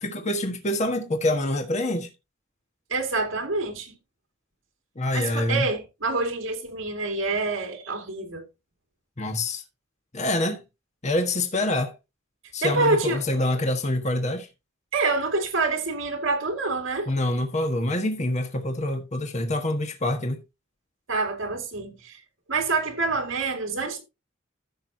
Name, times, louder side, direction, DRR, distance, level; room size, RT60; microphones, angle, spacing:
voice 1, 0.0-2.1 4.9-5.7 9.2-9.6 10.1-10.6 11.0-11.9 12.5-14.5 17.1-20.4, left 1 dB, 35° left, 1.5 m, -26 dB
voice 2, 2.9-4.0 5.1-8.4 12.6-13.2 14.9-17.1 21.1-22.2 22.5-24.0, right 3 dB, 90° right, 2.3 m, -26 dB
15.0 x 6.2 x 2.8 m
head